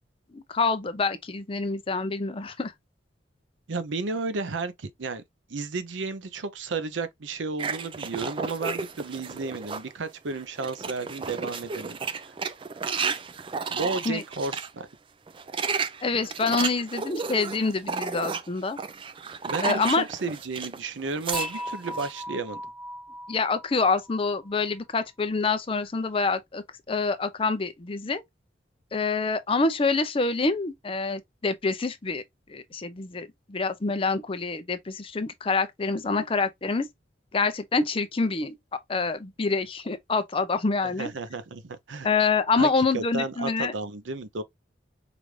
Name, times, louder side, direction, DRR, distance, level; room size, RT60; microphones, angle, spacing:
voice 1, 0.3-2.7 14.1-14.2 16.0-18.8 19.6-20.0 23.3-28.2 28.9-32.2 32.5-36.9 37.3-38.5 38.9-41.1 42.0-43.7, left 4 dB, 30° left, 0.5 m, -26 dB
voice 2, 3.7-5.2 5.5-12.0 13.7-14.9 19.5-22.6 40.8-42.1 42.6-42.7 42.9-44.4, right 3 dB, 85° right, 0.6 m, -33 dB
sound 1, 7.6-9.9 10.3-14.7 15.3-20.8 21.1-22.1, right 5 dB, 25° right, 0.4 m, -33 dB
Dishes pots and pans / Chink clink, 21.3-24.5, left 1 dB, 5° right, 1.3 m, -37 dB
4.9 x 2.6 x 3.0 m
head